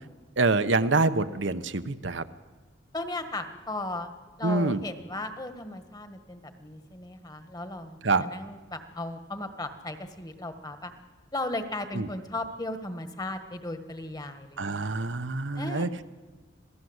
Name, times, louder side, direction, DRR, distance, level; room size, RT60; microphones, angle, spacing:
voice 1, 0.4-2.2 4.4-4.8 8.0-8.3 11.9-12.1 14.6-16.1, right 3 dB, 75° right, 10 dB, 1.0 m, -26 dB
voice 2, 2.9-4.1 4.4-10.9 11.3-15.0 15.5-15.9, left 2 dB, 20° left, 9 dB, 1.6 m, -36 dB
27.0 x 17.5 x 8.1 m, 1.3 s
head